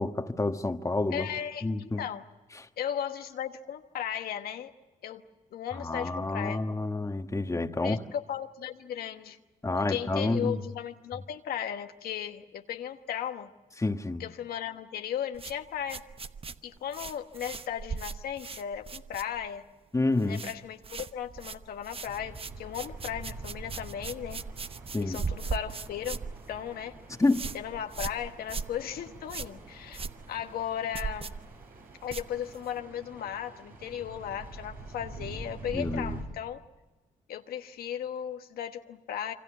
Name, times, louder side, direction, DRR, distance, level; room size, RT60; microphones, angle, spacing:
voice 1, 0.0-1.3 1.6-2.0 2.5-2.7 5.7-8.0 9.6-10.6 13.8-14.2 19.9-20.4 24.9-25.2 27.2-27.5 35.7-36.2, left 2 dB, 20° left, 1.5 m, -29 dB
voice 2, 1.1-2.2 2.8-4.7 5.0-5.2 5.5-6.6 7.8-9.4 9.7-13.5 14.2-16.0 16.6-19.7 20.2-24.4 25.0-26.2 26.5-26.9 27.5-31.3 32.0-36.6 37.3-39.3, left 9 dB, 80° left, 1.2 m, -36 dB
sound 1, 15.3-19.7 20.0-20.6 20.8-32.8, right 5 dB, 40° right, 1.0 m, -39 dB
sound 2, 22.1-36.2, right 3 dB, 75° right, 7.9 m, -46 dB
27.0 x 24.5 x 7.2 m
supercardioid pair, 60°, 15 cm